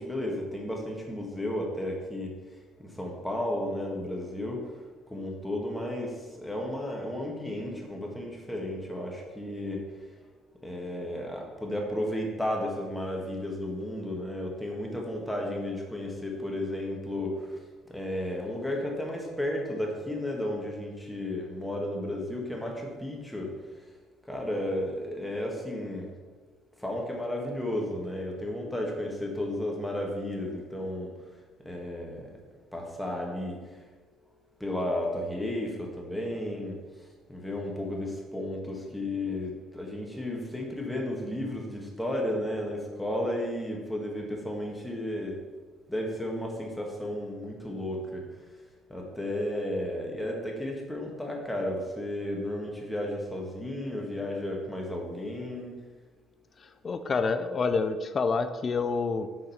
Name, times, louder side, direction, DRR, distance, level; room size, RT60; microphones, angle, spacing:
voice 1, 0.0-2.3 2.8-4.8 5.1-9.8 10.6-17.6 17.9-23.5 23.8-23.9 24.3-26.1 26.8-31.1 31.6-32.3 32.7-33.6 34.6-36.8 37.3-45.3 45.9-48.4 48.9-55.7, left 1 dB, 5° left, -1 dB, 1.6 m, -33 dB
voice 2, 56.6-59.3, left 4 dB, 35° left, 9 dB, 0.4 m, -28 dB
6.7 x 3.9 x 5.8 m, 1.4 s
cardioid pair, 110°, 0 cm